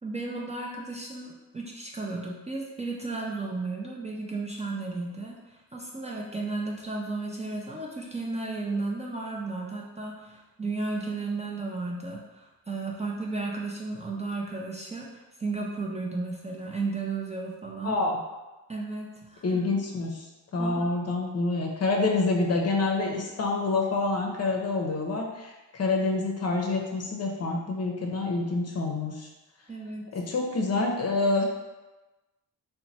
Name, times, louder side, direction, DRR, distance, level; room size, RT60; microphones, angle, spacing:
voice 1, 0.0-18.0 18.7-19.6 20.6-21.0 29.7-30.1, right 3 dB, 20° right, -2 dB, 0.5 m, -34 dB
voice 2, 17.8-18.2 19.4-20.3 20.5-29.3 30.1-31.4, left 3 dB, 40° left, 1 dB, 0.7 m, -27 dB
2.9 x 2.2 x 4.1 m, 1.1 s
cardioid pair, 80°, 37 cm